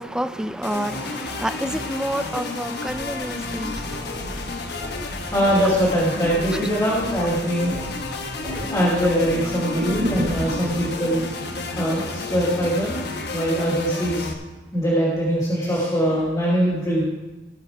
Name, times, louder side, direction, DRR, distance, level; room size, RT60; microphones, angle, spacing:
voice 1, 0.0-4.0 6.5-6.7, right 1 dB, 5° right, 0.4 m, -29 dB
sound 1, 0.6-14.3, left 3 dB, 60° left, 1.2 m, -31 dB
sound 2, 2.9-10.6, equal, 25° right, 2.3 m, -38 dB
voice 2, 5.3-7.8 8.7-11.2 11.7-13.0 13.3-14.3 14.7-17.1, equal, 20° left, 3.0 m, -22 dB
sound 3, 9.7-13.8 14.1-14.2, right 1 dB, 80° right, 0.9 m, -32 dB
17.0 x 6.0 x 4.9 m
head